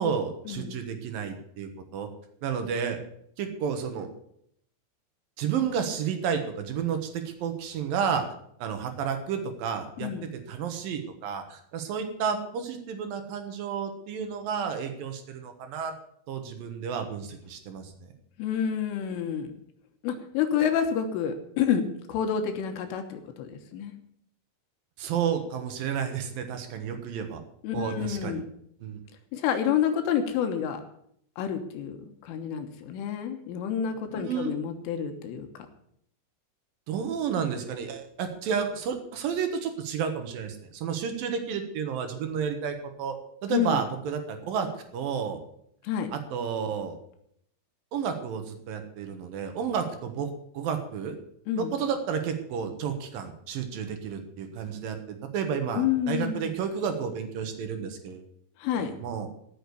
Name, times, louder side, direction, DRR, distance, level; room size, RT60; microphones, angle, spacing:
voice 1, 0.0-2.1 2.4-3.0 3.4-4.1 5.4-8.2 8.6-15.9 16.3-18.1 25.0-27.4 27.7-28.4 28.8-29.0 34.1-34.5 36.9-43.2 43.4-44.7 44.9-45.4 46.1-47.0 47.9-51.2 51.6-58.2 58.7-59.3, right 7 dB, 70° right, 6 dB, 2.1 m, -31 dB
voice 2, 18.4-19.5 20.0-23.9 27.6-28.4 29.3-30.8 31.4-35.5 43.5-43.8 45.8-46.1 51.5-51.7 55.8-56.5 58.6-58.9, left 8 dB, 75° left, 6 dB, 3.6 m, -29 dB
15.5 x 6.5 x 8.3 m, 0.70 s
omnidirectional pair, 5.9 m